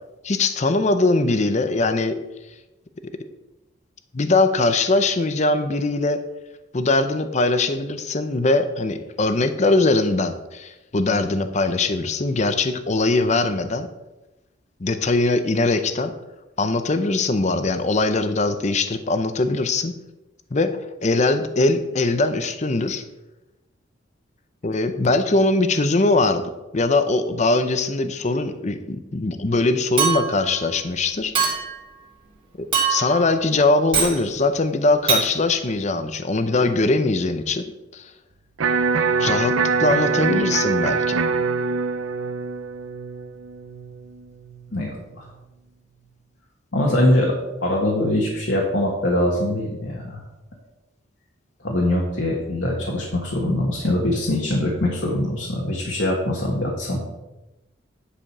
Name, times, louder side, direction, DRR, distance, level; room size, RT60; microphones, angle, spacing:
voice 1, 0.2-2.2 4.1-6.2 6.7-13.9 14.8-16.1 16.6-19.9 20.5-20.7 21.0-23.0 24.6-26.4 26.7-31.3 32.6-37.6 37.9-38.0 39.2-39.5 39.8-41.2, left 2 dB, 35° left, 9 dB, 0.6 m, -21 dB
Chink clink, 30.0-30.5 31.3-31.8 32.7-33.2 33.9-34.2 35.1-35.3, right 6 dB, 25° right, 2.3 m, -22 dB
Electric guitar, 38.6-44.6, right 5 dB, 80° right, 0.6 m, -24 dB
voice 2, 46.7-47.3 47.6-50.2 51.6-57.0, left 1 dB, 60° left, -3 dB, 1.6 m, -22 dB
10.0 x 5.0 x 6.0 m, 1.0 s
head